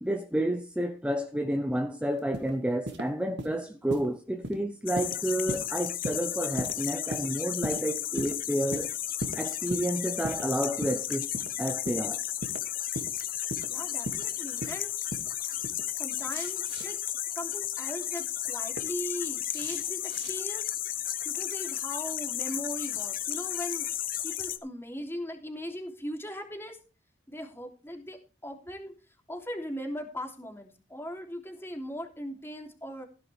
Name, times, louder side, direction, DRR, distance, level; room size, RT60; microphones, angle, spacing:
voice 1, 0.0-8.9 9.4-11.3 11.6-12.2, right 1 dB, 5° right, 0.8 m, -30 dB
footsteps low shoes, 2.2-2.5 2.9-3.1 3.4-3.6 3.9-4.1 4.4-4.6 5.0-5.2 5.5-5.7 6.0-6.2 6.6-6.7 7.1-7.3 7.6-7.8 8.2-8.3 8.7-8.9 9.2-9.4 9.7-9.9 10.2-10.5 10.8-11.0 11.3-11.5 11.9-12.0 12.4-12.6 12.9-13.1 13.5-13.7 14.1-14.3 14.6-14.8 15.1-15.3 15.6-15.8 16.2-16.9 18.3-18.8 19.5-20.4, right 1 dB, 65° right, 2.3 m, -37 dB
sound 1, 4.9-24.6, left 12 dB, 50° left, 1.1 m, -33 dB
voice 2, 13.6-14.9 15.5-15.6 16.0-17.0 17.3-20.7 20.9-26.8 27.3-28.9 29.3-33.1, equal, 15° left, 3.2 m, -39 dB
16.0 x 10.5 x 3.5 m
head